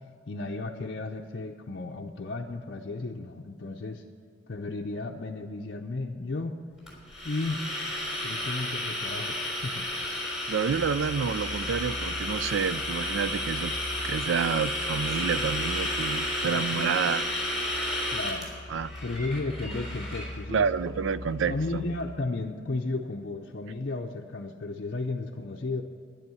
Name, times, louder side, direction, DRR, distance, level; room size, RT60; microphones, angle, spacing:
voice 1, 0.3-4.0 4.5-6.6 7.2-7.6 8.2-9.8 16.4-17.0 18.1-18.5 19.0-20.7 21.5-25.8, left 3 dB, 55° left, -1 dB, 0.6 m, -34 dB
sound 1, 6.9-20.3, left 1 dB, ahead, 3.9 m, -32 dB
voice 2, 10.5-13.7 14.0-17.3 18.0-18.1 18.7-18.9 20.5-21.6, right 6 dB, 75° right, 17 dB, 0.4 m, -28 dB
sound 2, 10.7-22.2, left 1 dB, 20° left, 1.4 m, -42 dB
11.0 x 10.5 x 7.0 m, 2.5 s
head